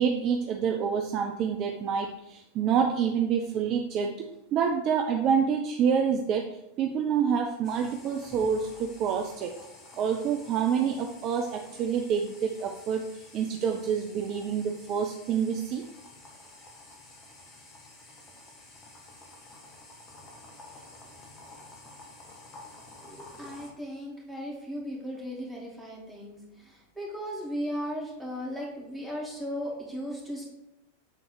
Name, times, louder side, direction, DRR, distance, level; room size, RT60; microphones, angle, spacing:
voice 1, 0.0-4.1 4.5-9.5 10.0-15.8, right 7 dB, 35° right, 3 dB, 0.5 m, -27 dB
sound 1, 7.6-23.7, left 2 dB, 25° left, 1.4 m, -50 dB
voice 2, 23.1-30.4, equal, 10° right, -3 dB, 2.3 m, -36 dB
7.3 x 3.8 x 4.5 m, 0.88 s
figure-of-eight pair, 90°, 0 cm